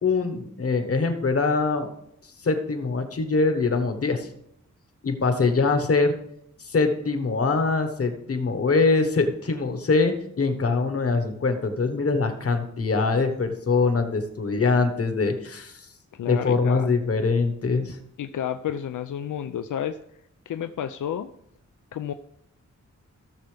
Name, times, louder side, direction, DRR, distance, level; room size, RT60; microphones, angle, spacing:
voice 1, 0.0-1.9 2.4-4.3 5.0-6.1 6.6-15.9 16.2-18.0, left 4 dB, 50° left, 7 dB, 1.3 m, -23 dB
voice 2, 16.2-16.9 18.2-20.0 20.5-21.3 21.9-22.1, left 9 dB, 80° left, 9 dB, 0.5 m, -30 dB
16.5 x 6.8 x 3.4 m, 0.74 s
wide cardioid pair, 170°, 30 cm